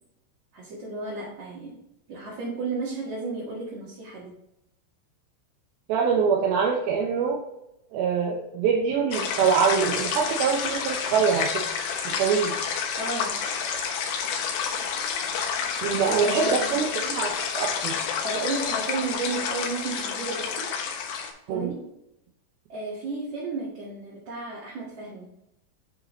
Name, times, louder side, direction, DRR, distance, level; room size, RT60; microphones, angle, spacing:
voice 1, 0.5-1.8 2.1-4.3 13.0-13.4 16.2-16.9 18.2-20.7 21.5-21.9 22.7-25.3, right 3 dB, 55° right, -7 dB, 3.0 m, -33 dB
voice 2, 5.9-7.4 7.9-11.6 12.1-12.5 15.8-18.0 21.5-21.7, right 6 dB, 85° right, -1 dB, 2.8 m, -24 dB
sound 1, 9.1-21.3, left 6 dB, 85° left, 3.0 m, -29 dB
9.6 x 5.0 x 3.1 m, 0.85 s
omnidirectional pair, 4.2 m